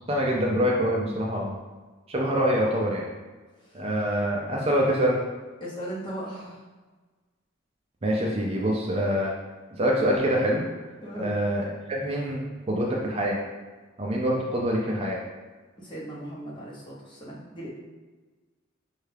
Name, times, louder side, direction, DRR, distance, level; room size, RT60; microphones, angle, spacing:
voice 1, 0.1-1.6 2.1-3.1 3.7-5.2 8.0-9.3 9.8-10.6 11.1-12.4 12.7-13.4 14.0-15.2, equal, 30° right, -2 dB, 0.4 m, -25 dB
voice 2, 5.6-6.6 11.0-11.3 15.8-17.7, equal, 25° left, -5 dB, 0.8 m, -37 dB
5.4 x 2.4 x 3.3 m, 1.3 s
head